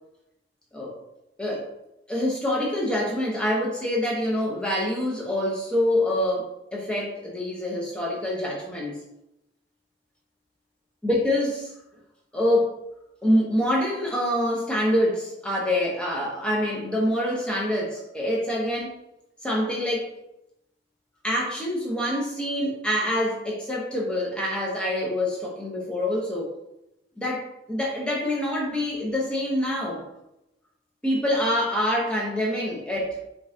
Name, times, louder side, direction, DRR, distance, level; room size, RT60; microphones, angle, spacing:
voice 1, 2.1-9.0 11.0-11.7 12.3-12.7 13.2-18.9 19.4-20.1 21.2-26.5 27.2-30.0 31.0-33.2, left 1 dB, 5° left, -4 dB, 0.9 m, -26 dB
5.4 x 2.5 x 2.7 m, 0.86 s
head